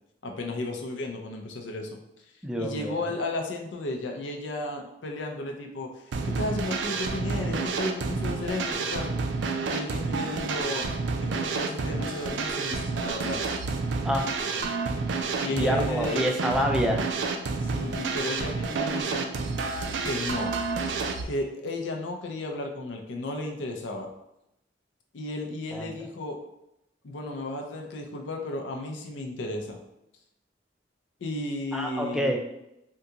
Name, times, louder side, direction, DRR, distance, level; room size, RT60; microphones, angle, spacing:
voice 1, 0.2-2.0 2.6-9.1 9.7-10.9 11.2-13.6 14.6-14.9 15.4-16.2 17.6-19.3 20.0-20.5 21.2-24.1 25.1-26.4 27.0-29.8 31.2-32.4, left 2 dB, 90° left, 2 dB, 0.5 m, -34 dB
voice 2, 2.4-3.1 14.0-14.3 15.5-17.1 25.7-25.9 31.7-32.4, equal, 5° right, 2 dB, 0.3 m, -27 dB
sound 1, 6.1-21.2, right 4 dB, 75° right, 0.4 m, -29 dB
3.6 x 2.3 x 2.8 m, 0.85 s
head